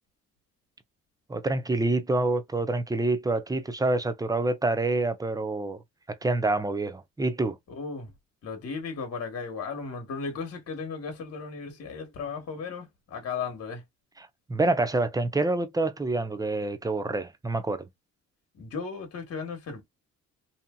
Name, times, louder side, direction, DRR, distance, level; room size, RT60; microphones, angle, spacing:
voice 1, 1.3-5.8 6.1-7.6 14.2-17.8, right 2 dB, 10° right, 0.6 m, -27 dB
voice 2, 7.8-8.1 8.4-13.8 18.6-19.8, left 5 dB, 55° left, 1.3 m, -35 dB
2.8 x 2.5 x 2.2 m
cardioid pair, 90°, 30 cm